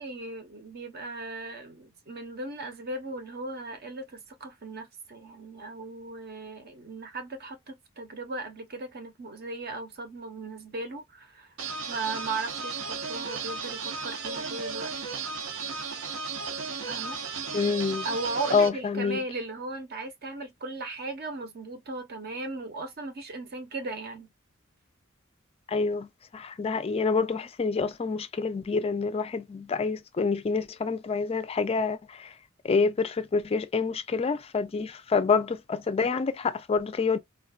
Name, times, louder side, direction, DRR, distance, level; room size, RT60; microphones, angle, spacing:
voice 1, 0.0-11.5 11.9-14.9 16.9-17.2 18.0-24.3, right 2 dB, 50° right, 0.7 m, -37 dB
sound 1, 11.6-18.7, right 5 dB, 80° right, 0.7 m, -35 dB
voice 2, 17.5-18.1 18.5-19.2 25.7-26.1 26.3-32.3 32.6-37.2, left 4 dB, 30° left, 0.3 m, -27 dB
3.6 x 2.2 x 2.3 m
head